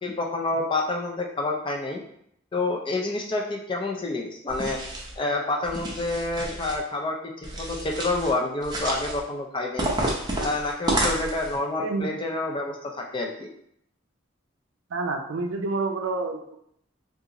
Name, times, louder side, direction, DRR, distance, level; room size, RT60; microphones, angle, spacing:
voice 1, 0.0-2.0 2.5-4.8 5.2-7.2 7.6-9.9 10.4-13.5, left 2 dB, 25° left, 0 dB, 0.4 m, -28 dB
sound 1, 4.5-5.1 5.6-6.8 7.4-8.3 8.6-9.2 9.8-11.6, right 1 dB, 20° right, 0.6 m, -30 dB
voice 2, 11.8-12.1 14.9-16.6, right 3 dB, 70° right, 4 dB, 0.4 m, -28 dB
3.6 x 2.4 x 2.9 m, 0.72 s
head